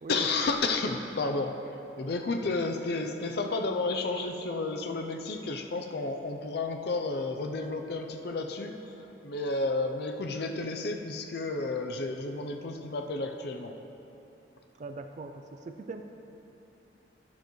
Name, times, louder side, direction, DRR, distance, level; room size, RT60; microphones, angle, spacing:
voice 1, 0.1-1.5 2.0-8.9 9.2-13.7, left 3 dB, 65° left, 4 dB, 0.6 m, -31 dB
voice 2, 14.8-16.0, right 3 dB, 40° right, 5 dB, 0.4 m, -41 dB
11.5 x 11.5 x 3.1 m, 2.9 s
head